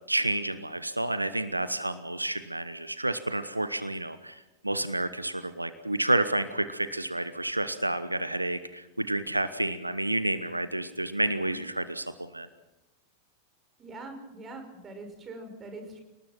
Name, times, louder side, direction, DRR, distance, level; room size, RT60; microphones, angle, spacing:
voice 1, 0.1-12.5, right 1 dB, 85° right, 13 dB, 1.0 m, -30 dB
voice 2, 13.8-16.0, right 2 dB, 20° right, 6 dB, 5.7 m, -43 dB
30.0 x 19.0 x 6.0 m, 0.99 s
figure-of-eight pair, 90°, 0 cm